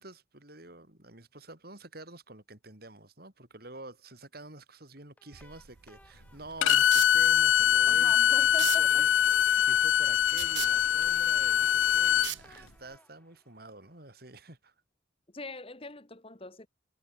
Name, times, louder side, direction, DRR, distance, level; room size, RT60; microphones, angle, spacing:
voice 1, 0.0-9.1 9.4-14.7, right 2 dB, 50° right, 3.7 m, -48 dB
sound 1, 5.2-14.3, left 1 dB, 10° left, 5.6 m, -60 dB
sound 2, 5.3-13.0, right 15 dB, 70° right, 0.8 m, -41 dB
Bowed string instrument, 6.6-12.3, left 10 dB, 80° left, 0.4 m, -23 dB
voice 2, 7.9-9.1 15.3-16.7, left 3 dB, 30° left, 1.8 m, -42 dB
head